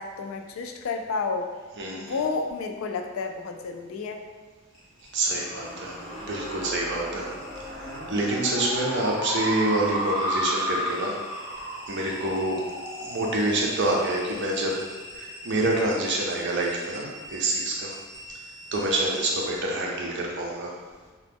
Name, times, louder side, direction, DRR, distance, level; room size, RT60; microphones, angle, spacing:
voice 1, 0.0-1.5 2.0-4.2, left 4 dB, 70° left, 4 dB, 0.3 m, -31 dB
voice 2, 1.8-2.2 5.1-7.3 7.7-11.1 11.9-12.6 13.0-14.7 15.1-17.9 18.7-20.7, right 1 dB, 55° right, -2 dB, 0.5 m, -27 dB
sound 1, 4.7-19.6, equal, 35° left, 0.9 m, -44 dB
sound 2, 5.3-10.1, equal, 5° left, 1.1 m, -40 dB
sound 3, 5.7-14.5, equal, 20° right, 1.0 m, -33 dB
2.9 x 2.1 x 3.4 m, 1.4 s
head